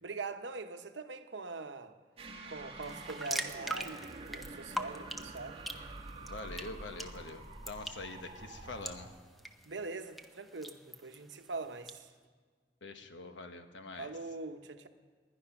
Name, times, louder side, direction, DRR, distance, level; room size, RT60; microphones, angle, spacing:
voice 1, 0.0-1.9 2.5-5.6 9.6-12.1 14.0-14.9, right 3 dB, 70° right, 8 dB, 1.0 m, -42 dB
sound 1, 2.2-9.1, right 2 dB, 35° right, 1.4 m, -47 dB
sound 2, 2.8-12.0, right 1 dB, ahead, 0.8 m, -44 dB
voice 2, 6.2-9.1 12.8-14.1, left 3 dB, 75° left, 7 dB, 1.2 m, -45 dB
20.5 x 11.0 x 5.9 m, 1.5 s
head